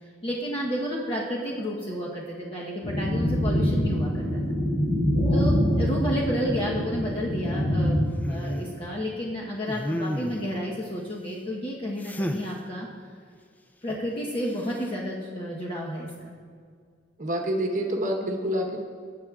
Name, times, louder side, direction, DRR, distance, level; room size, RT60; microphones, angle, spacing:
voice 1, 0.2-4.4 5.3-12.9 13.8-16.4, equal, 30° left, -4 dB, 0.9 m, -31 dB
sound 1, 2.8-7.9, equal, 75° left, 2.8 m, -25 dB
sound 2, 8.2-8.8 9.6-10.6 12.0-12.5 14.5-14.9, equal, 10° left, 0.4 m, -31 dB
voice 2, 17.2-18.8, equal, 45° right, 2 dB, 1.0 m, -27 dB
16.0 x 8.6 x 2.4 m, 2.1 s
head